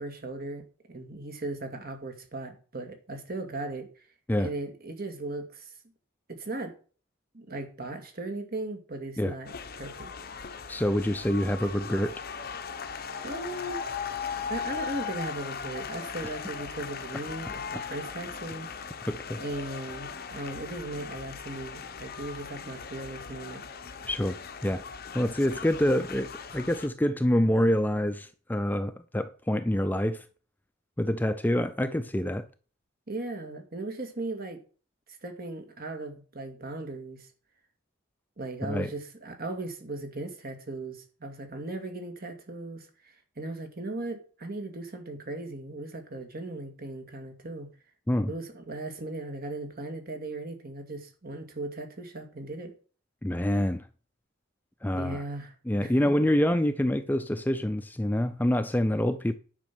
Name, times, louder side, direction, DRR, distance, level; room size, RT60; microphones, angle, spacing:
voice 1, 0.0-3.9 4.4-5.8 6.3-6.7 7.3-10.1 13.2-13.9 14.5-18.7 19.4-23.6 33.1-34.6 35.2-37.3 38.4-47.7 48.3-52.7 54.9-55.5 55.8-55.9, right 2 dB, 45° right, 2.3 m, -37 dB
sound 1, 9.5-26.9, left 6 dB, 45° left, 1.0 m, -38 dB
voice 2, 10.7-12.2 19.1-19.4 24.1-24.8 25.1-30.2 31.0-32.5 38.6-38.9 48.1-48.3 53.2-53.9 54.8-55.2 55.7-59.3, left 1 dB, 10° left, 0.5 m, -26 dB
10.5 x 6.1 x 6.1 m
head